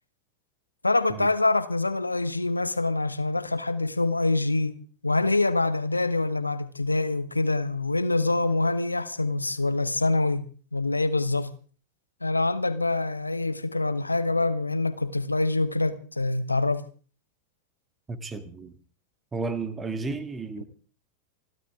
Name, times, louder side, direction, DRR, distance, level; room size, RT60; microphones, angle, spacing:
voice 1, 0.8-4.7 5.0-11.5 12.2-16.8, left 2 dB, 80° left, 1.1 m, -25 dB
voice 2, 18.1-18.7 19.3-20.6, right 3 dB, 15° right, 1.8 m, -33 dB
27.5 x 12.0 x 3.6 m
figure-of-eight pair, 90°, 0 cm